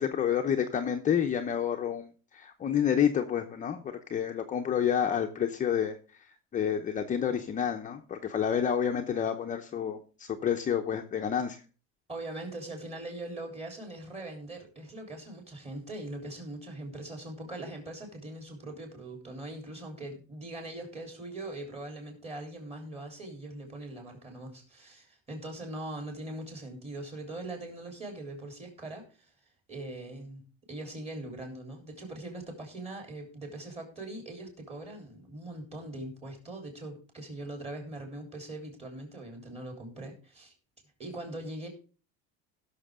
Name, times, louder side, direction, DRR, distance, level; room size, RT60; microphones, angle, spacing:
voice 1, 0.0-6.0 6.5-11.6, left 8 dB, 25° left, 3 dB, 0.8 m, -29 dB
voice 2, 12.1-29.3 29.7-30.4 30.7-40.5 41.0-41.7, right 1 dB, 20° right, 2 dB, 3.7 m, -41 dB
17.0 x 6.6 x 3.7 m, 0.35 s
cardioid pair, 135°, 29 cm